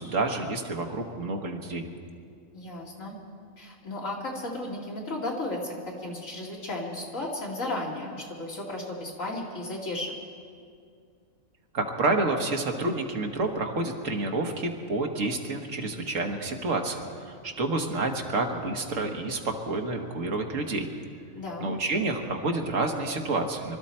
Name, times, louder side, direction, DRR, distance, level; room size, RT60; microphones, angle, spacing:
voice 1, 0.0-1.8 11.7-20.9 21.6-23.8, right 2 dB, 65° right, 3 dB, 1.7 m, -29 dB
voice 2, 2.5-3.2 3.6-10.1 21.3-21.7, left 2 dB, 70° left, -3 dB, 2.8 m, -34 dB
24.5 x 13.0 x 4.4 m, 2.3 s
omnidirectional pair, 1.4 m